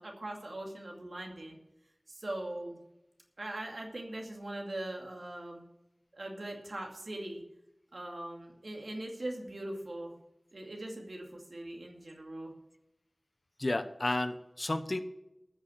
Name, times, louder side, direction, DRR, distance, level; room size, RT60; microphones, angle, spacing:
voice 1, 0.0-1.6 2.1-2.8 3.4-5.6 6.1-7.4 7.9-10.1 10.5-12.5, right 1 dB, 80° right, 1 dB, 2.4 m, -41 dB
voice 2, 13.6-15.0, left 2 dB, 55° left, 10 dB, 1.0 m, -32 dB
14.5 x 6.5 x 7.8 m, 0.88 s
wide cardioid pair, 50°, 0 cm